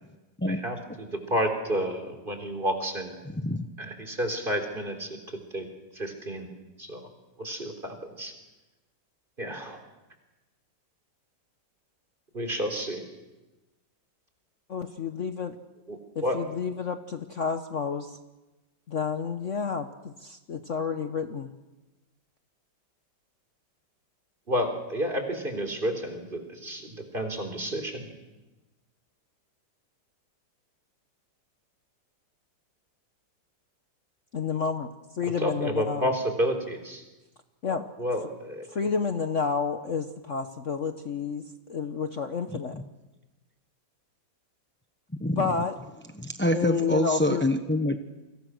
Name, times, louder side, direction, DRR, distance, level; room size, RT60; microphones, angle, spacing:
voice 1, 0.5-3.2 3.8-5.2 5.5-5.7 5.9-6.5 6.8-7.1 7.4-8.3 9.4-9.8 12.3-13.0 15.9-16.4 24.5-28.1 35.2-37.0 38.0-38.7, equal, 25° right, 5 dB, 3.9 m, -30 dB
voice 2, 3.4-3.7 42.5-42.6 45.2-45.5 46.2-48.0, left 1 dB, 10° left, 7 dB, 0.6 m, -26 dB
voice 3, 14.7-15.6 16.1-18.2 18.9-21.5 34.3-34.9 35.1-36.1 37.6-37.9 38.7-42.8 45.4-45.8 46.5-47.4, left 5 dB, 50° left, 8 dB, 1.2 m, -30 dB
29.0 x 25.0 x 6.4 m, 1.1 s
omnidirectional pair, 2.0 m